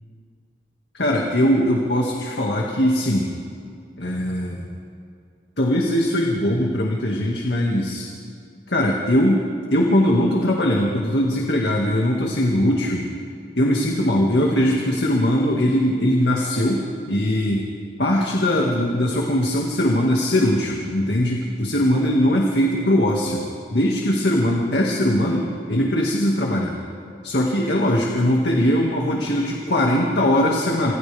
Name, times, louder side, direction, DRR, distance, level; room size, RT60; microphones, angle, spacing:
voice 1, 0.9-3.3 4.0-4.6 5.6-8.1 8.7-9.4 9.7-13.1 13.6-17.7 18.0-23.4 23.7-26.8 27.2-30.9, left 1 dB, 75° left, -1 dB, 2.1 m, -20 dB
28.0 x 26.0 x 3.6 m, 2.3 s
head